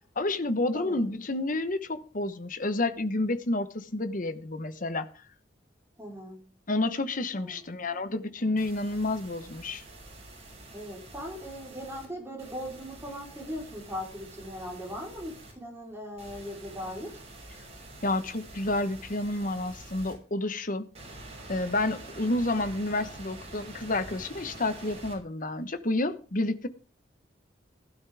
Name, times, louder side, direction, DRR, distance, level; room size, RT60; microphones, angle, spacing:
voice 1, 0.2-5.1 6.7-9.8 18.0-20.9 21.5-26.7, left 2 dB, 45° left, 11 dB, 1.1 m, -30 dB
voice 2, 6.0-6.5 7.3-7.6 10.7-17.2, equal, 15° right, -1 dB, 4.0 m, -39 dB
sound 1, 8.6-12.1 12.4-15.5 16.2-20.1 20.9-25.2, right 2 dB, 35° right, 6.0 m, -47 dB
15.5 x 12.0 x 3.6 m, 0.35 s
head